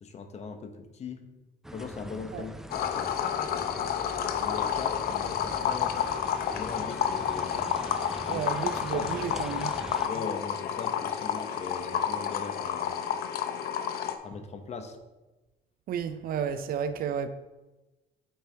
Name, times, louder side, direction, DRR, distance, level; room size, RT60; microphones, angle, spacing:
voice 1, 0.0-1.3 1.7-6.0 6.5-7.6 8.3-8.4 8.9-9.4 10.1-13.0 14.2-15.0, left 5 dB, 40° left, 0.9 m, -40 dB
sound 1, 1.6-10.1, right 1 dB, 5° right, 0.3 m, -43 dB
sound 2, 2.7-14.2, left 9 dB, 65° left, 0.6 m, -30 dB
voice 2, 8.3-9.7 15.9-17.3, right 7 dB, 60° right, 0.5 m, -32 dB
8.5 x 4.6 x 3.4 m
cardioid pair, 110°, 17 cm